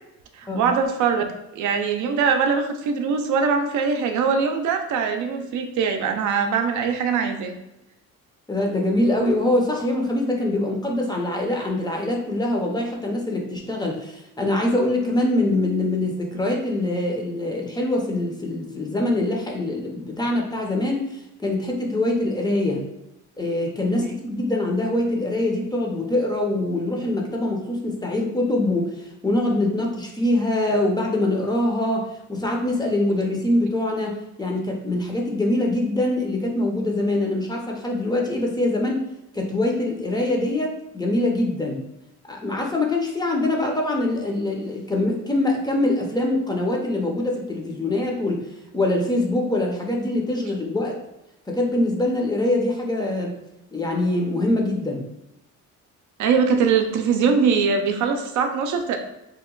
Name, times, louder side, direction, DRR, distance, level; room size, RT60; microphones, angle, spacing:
voice 1, 0.3-1.2 1.5-7.6 56.2-59.0, right 5 dB, 70° right, 5 dB, 0.5 m, -22 dB
voice 2, 8.5-22.8 23.4-39.0 39.3-41.8 42.3-48.5 48.7-51.0 51.5-53.3 53.7-55.0, left 1 dB, 15° left, 0 dB, 0.5 m, -24 dB
2.9 x 2.1 x 3.7 m, 0.90 s
cardioid pair, 110°, 31 cm